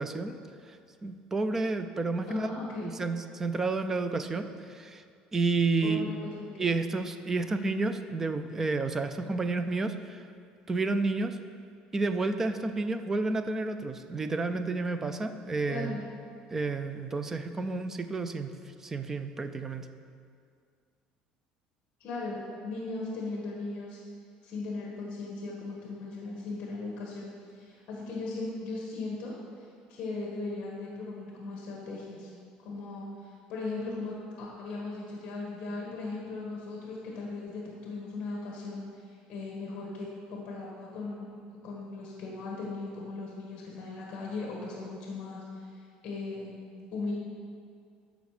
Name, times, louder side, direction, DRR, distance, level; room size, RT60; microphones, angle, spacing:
voice 1, 0.0-2.5 2.8-5.0 5.3-6.1 6.6-10.2 10.7-11.4 11.9-16.0 16.5-19.9, right 3 dB, 15° right, 9 dB, 0.4 m, -31 dB
voice 2, 2.2-2.9 5.8-6.7 15.7-16.0 22.0-24.0 24.4-32.3 32.6-41.3 41.6-46.6 46.9-47.1, left 3 dB, 35° left, -3 dB, 1.5 m, -38 dB
13.5 x 5.1 x 4.9 m, 2.2 s
cardioid pair, 180°, 3 cm